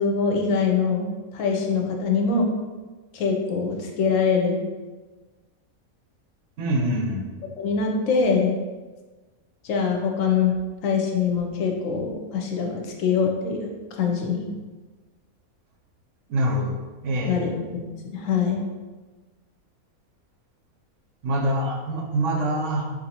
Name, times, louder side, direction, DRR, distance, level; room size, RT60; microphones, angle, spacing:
voice 1, 0.0-2.5 3.1-4.6 7.6-8.5 9.6-10.6 10.8-14.5 17.3-17.5 18.1-18.6, left 5 dB, 70° left, 1 dB, 0.9 m, -23 dB
voice 2, 6.6-7.2 16.3-16.7 17.0-17.5 21.2-22.8, right 1 dB, 65° right, -1 dB, 0.9 m, -24 dB
4.1 x 2.6 x 2.8 m, 1.3 s
omnidirectional pair, 1.5 m